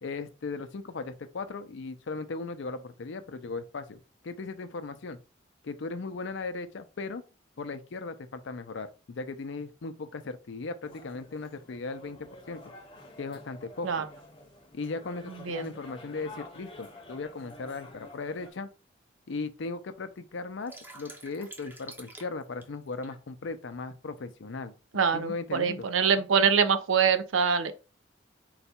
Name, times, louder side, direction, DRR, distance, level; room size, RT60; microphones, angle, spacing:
voice 1, 0.0-5.2 5.6-7.2 7.6-12.6 13.2-14.0 14.7-18.7 19.3-24.7 25.1-25.9, left 3 dB, 70° left, 0.5 m, -37 dB
sound 1, 10.8-18.5, left 2 dB, 30° left, 0.8 m, -49 dB
voice 2, 15.3-15.7 24.9-27.7, right 6 dB, 90° right, 0.5 m, -25 dB
sound 2, 17.4-17.5 18.2-18.3 18.7-18.8 19.0-19.6 20.0-23.2, right 2 dB, 10° right, 0.6 m, -48 dB
3.9 x 2.3 x 4.2 m
head